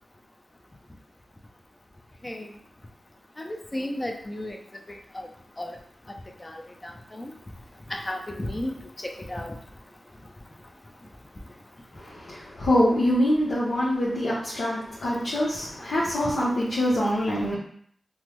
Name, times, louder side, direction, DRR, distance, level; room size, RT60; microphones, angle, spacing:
voice 1, 3.4-4.6 5.6-5.7 7.2-7.3 7.9-8.7 9.3-9.5, left 1 dB, 30° left, 3 dB, 0.5 m, -32 dB
voice 2, 12.3-17.6, left 1 dB, 85° left, -8 dB, 0.8 m, -24 dB
3.4 x 2.0 x 3.0 m, 0.62 s
cardioid pair, 55°, 0 cm